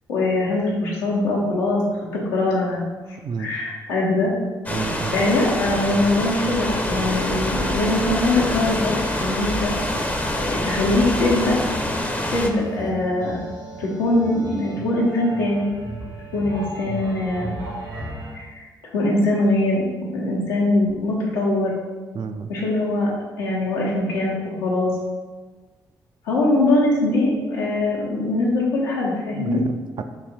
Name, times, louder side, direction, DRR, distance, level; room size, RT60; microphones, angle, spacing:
voice 1, 0.1-1.8 2.1-2.8 3.4-4.3 5.1-9.8 10.5-11.6 12.3-13.4 13.8-15.7 16.3-17.5 18.3-18.7 18.9-21.8 22.5-23.1 23.4-24.9 26.2-29.6, left 2 dB, 85° left, -5 dB, 0.8 m, -22 dB
voice 2, 3.2-3.5 4.7-5.2 22.1-22.5 29.3-30.0, right 5 dB, 45° right, 7 dB, 0.4 m, -29 dB
sound 1, 4.7-12.5, left 1 dB, 15° left, 0.6 m, -26 dB
sound 2, 5.6-18.3, right 1 dB, 85° right, 1.3 m, -36 dB
3.1 x 2.8 x 4.0 m, 1.3 s
hypercardioid pair, 40°, 10 cm